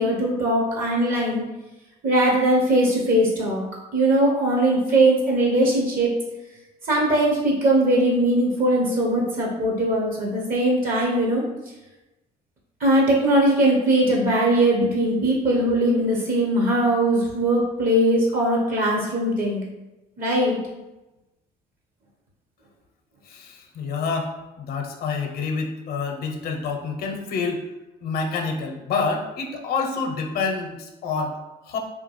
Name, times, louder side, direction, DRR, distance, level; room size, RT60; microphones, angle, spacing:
voice 1, 0.0-1.4 2.0-3.6 3.9-6.1 6.9-11.4 12.8-19.6 20.2-20.6, right 1 dB, 60° right, -2 dB, 0.9 m, -20 dB
voice 2, 23.2-27.7 28.0-31.8, left 4 dB, 65° left, 3 dB, 0.6 m, -28 dB
3.7 x 2.3 x 3.1 m, 1.0 s
cardioid pair, 110°, 17 cm